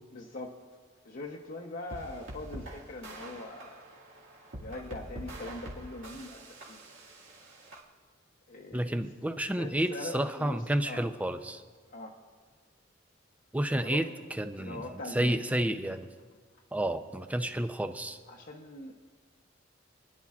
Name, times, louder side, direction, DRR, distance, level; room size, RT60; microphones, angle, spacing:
voice 1, 0.1-0.6 1.0-3.9 4.6-6.9 8.5-9.0 9.5-11.1 11.9-12.2 13.7-14.0 14.6-15.4 18.3-18.9, left 2 dB, 50° left, -2 dB, 0.8 m, -42 dB
sound 1, 1.9-7.8, right 1 dB, 85° right, 2.1 m, -45 dB
voice 2, 8.7-11.6 13.5-14.1 14.4-14.8 15.2-16.1 16.7-18.2, right 1 dB, 10° right, 8 dB, 0.5 m, -30 dB
28.0 x 10.5 x 2.4 m, 1.5 s
head